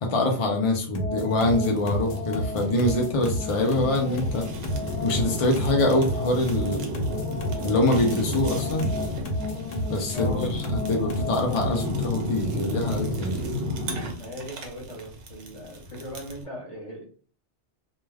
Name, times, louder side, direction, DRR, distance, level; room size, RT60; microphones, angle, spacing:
voice 1, 0.0-4.5 5.0-7.1 7.6-8.9 9.9-13.4, left 1 dB, 65° left, 2 dB, 0.3 m, -25 dB
sound 1, 0.9-12.0, left 1 dB, 85° left, 0.9 m, -32 dB
Fire, 1.3-16.4, left 1 dB, 65° right, 0.8 m, -33 dB
voice 2, 10.1-10.5 14.1-17.0, left 1 dB, 30° left, -2 dB, 1.1 m, -38 dB
2.2 x 2.2 x 3.2 m, 0.42 s
omnidirectional pair, 1.2 m